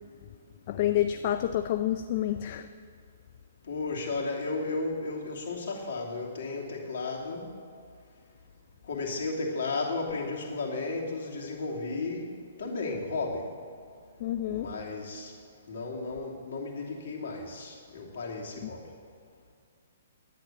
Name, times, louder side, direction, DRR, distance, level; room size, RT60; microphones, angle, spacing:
voice 1, 0.7-2.7 14.2-14.7 18.6-18.7, left 11 dB, 45° left, 9 dB, 0.5 m, -28 dB
voice 2, 3.7-7.4 8.9-12.3 12.6-13.5 14.5-15.3 15.7-18.8, left 3 dB, 65° left, -1 dB, 2.8 m, -34 dB
11.0 x 9.5 x 7.5 m, 2.2 s
hypercardioid pair, 135°, 0 cm